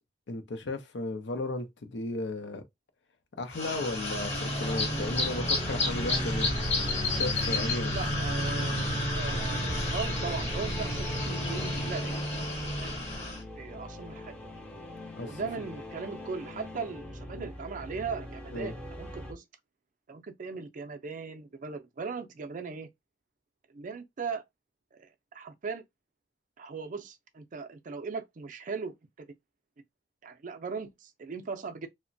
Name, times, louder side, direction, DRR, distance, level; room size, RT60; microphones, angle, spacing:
voice 1, 0.3-2.6 3.4-6.6 7.1-8.0 15.2-15.6 17.3-17.5 18.5-18.7, left 2 dB, 80° left, 0.6 m, -35 dB
sound 1, 3.5-13.4, left 1 dB, 40° left, 0.9 m, -30 dB
sound 2, 4.6-19.3, left 1 dB, 5° left, 0.5 m, -42 dB
voice 2, 7.9-8.9 9.1-12.2 12.8-13.0 13.6-14.3 15.3-19.4 20.1-22.9 23.7-24.4 25.0-25.8 26.6-28.9 30.2-31.9, right 5 dB, 45° right, 0.4 m, -38 dB
2.9 x 2.1 x 2.6 m
head